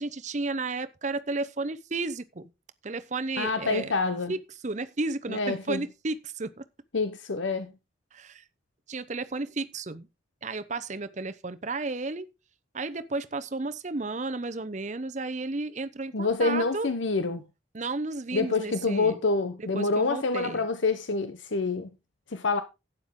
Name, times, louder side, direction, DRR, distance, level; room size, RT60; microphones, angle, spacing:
voice 1, 0.0-2.5 2.8-3.9 4.3-6.6 8.1-8.4 8.9-10.1 10.4-12.3 12.7-16.9 17.7-19.2 19.6-20.7, right 3 dB, 35° right, 0.8 m, -33 dB
voice 2, 3.4-4.3 5.3-5.8 6.9-7.7 16.1-17.4 18.3-21.9 22.3-22.6, left 3 dB, 70° left, 0.9 m, -27 dB
12.0 x 9.1 x 3.7 m
head